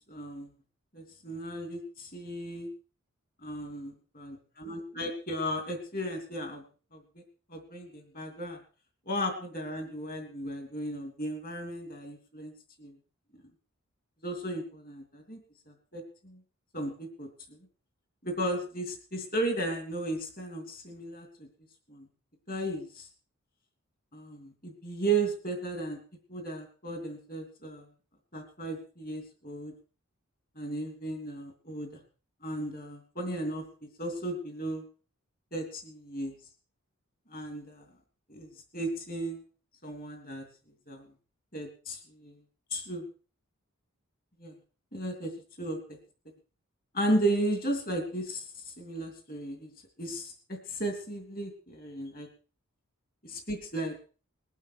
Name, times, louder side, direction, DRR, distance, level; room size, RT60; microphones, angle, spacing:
voice 1, 0.1-0.5 0.9-2.7 3.4-3.9 4.6-6.6 6.9-7.0 7.5-8.6 9.1-12.5 12.8-12.9 14.2-15.4 15.7-16.4 16.7-17.3 18.2-21.5 21.9-22.1 22.5-23.1 24.1-26.0 26.3-27.8 28.3-29.7 30.6-31.9 32.4-33.6 34.0-34.8 35.5-36.3 37.3-37.8 38.3-39.4 39.8-40.4 40.9-41.0 41.5-42.4 42.7-43.0 44.4-44.5 44.9-45.3 45.6-46.0 46.9-49.7 50.0-52.3 53.2-53.9, right 1 dB, 40° left, 4 dB, 3.0 m, -35 dB
20.5 x 12.0 x 4.7 m, 0.39 s
head